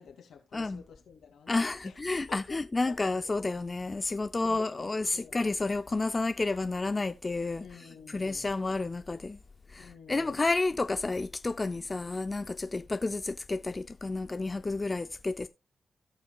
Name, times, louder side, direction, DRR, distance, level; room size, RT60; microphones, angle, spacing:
voice 1, 0.0-2.6 2.9-3.0 4.4-5.3 7.6-8.5 9.8-10.4, left 6 dB, 80° left, 2.3 m, -49 dB
voice 2, 0.5-0.8 1.5-9.4 9.7-15.5, left 3 dB, 30° left, 0.5 m, -31 dB
17.0 x 5.6 x 2.3 m
cardioid pair, 65°, 0 cm